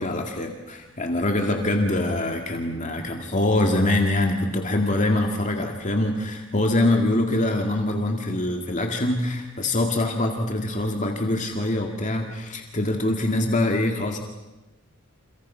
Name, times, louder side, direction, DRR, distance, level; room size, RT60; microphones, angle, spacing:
voice 1, 0.0-14.2, left 1 dB, 35° left, 3 dB, 2.2 m, -24 dB
30.0 x 28.5 x 5.7 m, 1.0 s
head